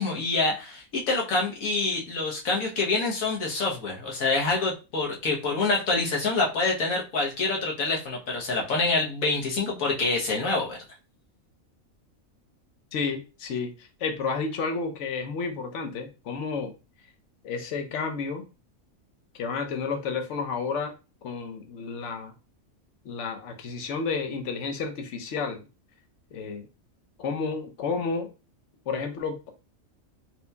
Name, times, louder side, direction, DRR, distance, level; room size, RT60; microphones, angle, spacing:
voice 1, 0.0-10.8, left 3 dB, 90° left, -1 dB, 1.5 m, -26 dB
voice 2, 12.9-16.7 17.4-18.4 19.4-20.9 21.2-22.3 23.0-25.6 26.3-26.7 27.2-28.3 28.9-29.5, left 5 dB, 65° left, 6 dB, 1.0 m, -31 dB
4.4 x 2.7 x 2.2 m, 0.31 s
omnidirectional pair, 1.4 m